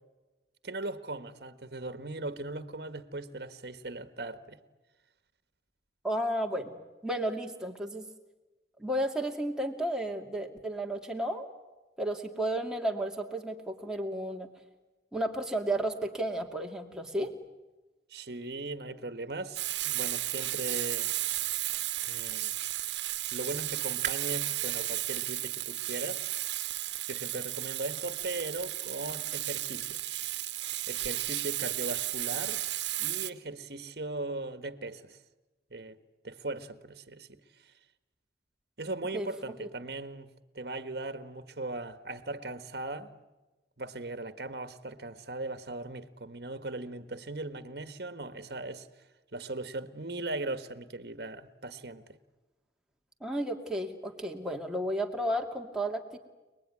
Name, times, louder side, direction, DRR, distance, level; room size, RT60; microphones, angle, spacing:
voice 1, 0.6-4.6 18.1-21.1 22.0-22.5 23.3-26.4 27.1-30.0 30.9-32.6 33.0-35.2 35.7-36.0 36.2-37.4 38.8-40.3 40.5-43.1 43.8-48.9 49.3-52.2, right 2 dB, 60° right, 1.5 m, -39 dB
voice 2, 6.0-6.8 7.0-8.1 8.8-11.5 12.0-14.5 15.1-17.3 39.1-39.3 53.2-56.2, right 1 dB, 5° right, 2.4 m, -32 dB
Frying (food), 19.6-33.3, right 15 dB, 80° right, 1.1 m, -34 dB
sound 1, 23.8-30.6, right 9 dB, 45° right, 1.6 m, -47 dB
30.0 x 20.5 x 9.8 m
head